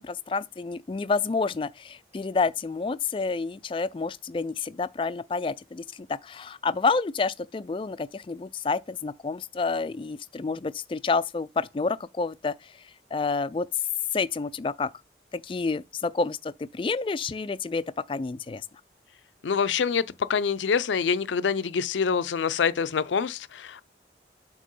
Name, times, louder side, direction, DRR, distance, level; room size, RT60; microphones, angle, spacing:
voice 1, 0.0-12.7 13.1-13.7 14.1-14.9 15.3-17.8 18.1-18.6, left 4 dB, 30° left, 0.3 m, -29 dB
voice 2, 19.4-20.0 20.3-23.8, left 6 dB, 90° left, 0.5 m, -25 dB
7.5 x 2.9 x 5.4 m
head